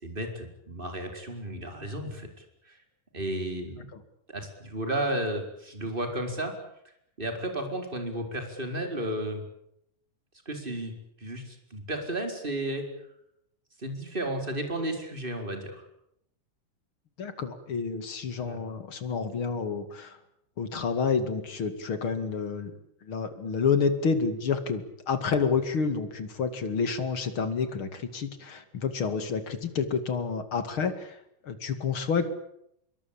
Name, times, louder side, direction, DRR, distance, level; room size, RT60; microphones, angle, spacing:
voice 1, 0.0-2.3 2.7-2.8 3.1-3.9 4.3-6.5 7.2-9.4 10.4-10.9 11.2-12.9 13.8-15.8 18.4-18.6, right 1 dB, 15° right, 5 dB, 4.8 m, -33 dB
voice 2, 17.2-20.2 20.6-22.7 23.0-31.2 31.4-32.3, left 5 dB, 40° left, 10 dB, 2.8 m, -29 dB
25.5 x 23.0 x 8.7 m, 0.76 s
omnidirectional pair, 3.8 m